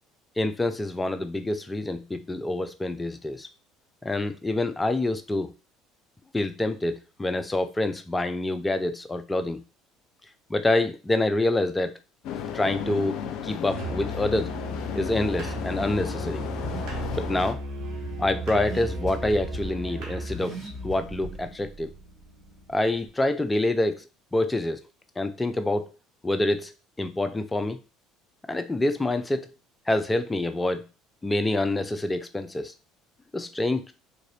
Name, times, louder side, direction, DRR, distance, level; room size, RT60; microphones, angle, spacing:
voice 1, 0.4-3.5 4.0-5.5 6.3-9.6 10.5-11.9 12.5-14.5 14.9-16.4 17.1-17.6 18.2-20.6 20.8-21.9 22.7-24.0 24.3-24.8 25.2-25.9 26.2-26.7 27.0-27.8 28.5-29.5 29.9-30.9 31.2-32.7 33.3-33.9, left 2 dB, 15° left, 8 dB, 0.5 m, -26 dB
sound 1, 12.2-17.5, left 8 dB, 65° left, 0.5 m, -34 dB
Musical instrument, 13.7-20.5, right 1 dB, 65° right, 1.1 m, -35 dB
Car / Accelerating revving vroom, 17.5-23.1, right 1 dB, 20° right, 2.1 m, -42 dB
3.7 x 2.5 x 3.3 m, 0.30 s
hypercardioid pair, 75°, 0 cm